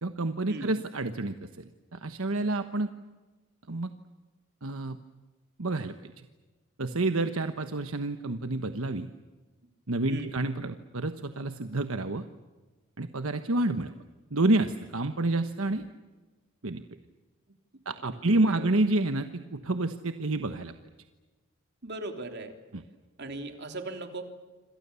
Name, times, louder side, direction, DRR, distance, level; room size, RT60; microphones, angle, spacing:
voice 1, 0.0-2.9 3.7-3.9 4.6-5.0 5.6-6.1 6.8-9.1 9.9-12.2 13.0-13.9 14.3-15.8 16.6-16.8 17.8-20.7 22.7-22.8, right 2 dB, 70° right, 8 dB, 1.2 m, -29 dB
voice 2, 18.0-18.7 21.8-22.6 23.2-24.2, right 2 dB, 50° right, 5 dB, 3.4 m, -38 dB
27.5 x 26.5 x 7.0 m, 1.2 s
head